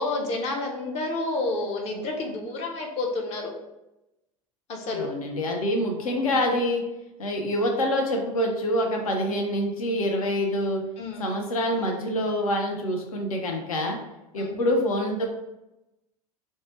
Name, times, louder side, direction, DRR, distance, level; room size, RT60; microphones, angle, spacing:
voice 1, 0.0-3.5 4.7-5.1 6.0-6.3 11.0-11.3 14.4-14.6, left 2 dB, 35° left, 1 dB, 0.6 m, -30 dB
voice 2, 4.9-6.8 7.2-10.8 11.2-14.0 14.3-15.3, equal, 70° left, 3 dB, 0.6 m, -26 dB
2.7 x 2.2 x 3.1 m, 0.93 s
figure-of-eight pair, 80°, 18 cm